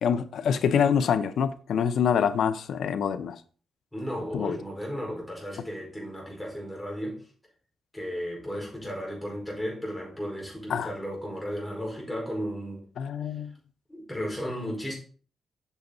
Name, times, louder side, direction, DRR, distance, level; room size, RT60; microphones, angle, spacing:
voice 1, 0.0-3.4 4.3-4.6 10.7-10.9 13.0-13.5, left 7 dB, 80° left, 0.7 m, -25 dB
voice 2, 3.9-7.2 7.9-12.8 13.9-14.9, equal, 5° left, 5.0 m, -34 dB
8.3 x 7.0 x 4.0 m
cardioid pair, 115°, 0 cm